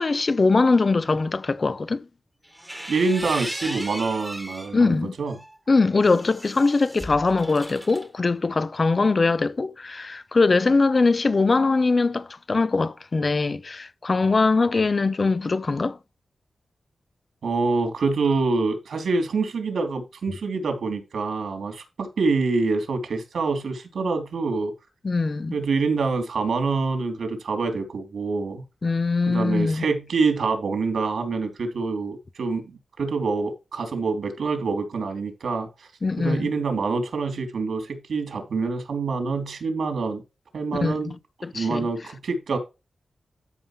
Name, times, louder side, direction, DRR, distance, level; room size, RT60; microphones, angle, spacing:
voice 1, 0.0-2.0 4.7-5.1 5.7-16.0 25.0-25.5 28.8-29.9 36.0-36.5 40.8-41.2 41.4-41.9, left 3 dB, 40° left, 0.8 m, -22 dB
sound 1, 2.4-4.8 5.3-8.1, right 1 dB, 5° right, 1.5 m, -37 dB
voice 2, 2.9-5.3 17.4-24.7 25.5-28.6 29.3-35.9 36.2-40.2 40.5-41.1 41.5-42.6, right 4 dB, 85° right, 3.2 m, -26 dB
13.0 x 5.5 x 3.2 m
wide cardioid pair, 120°, 0 cm